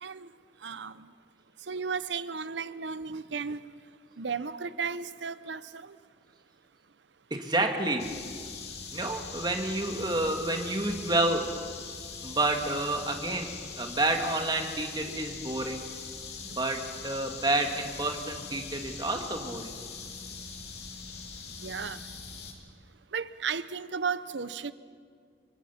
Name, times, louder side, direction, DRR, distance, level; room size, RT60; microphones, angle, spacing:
voice 1, 0.0-0.3 0.6-1.1 1.6-3.6 4.2-6.0 21.6-22.1 23.1-24.7, right 5 dB, 85° right, 15 dB, 0.8 m, -34 dB
voice 2, 7.3-8.1 8.9-11.4 12.2-13.5 13.8-15.9 16.4-19.7, right 2 dB, 25° right, 3 dB, 2.2 m, -29 dB
sound 1, 8.0-22.5, left 5 dB, 65° left, 2.9 m, -42 dB
27.5 x 23.5 x 5.9 m, 2.1 s
head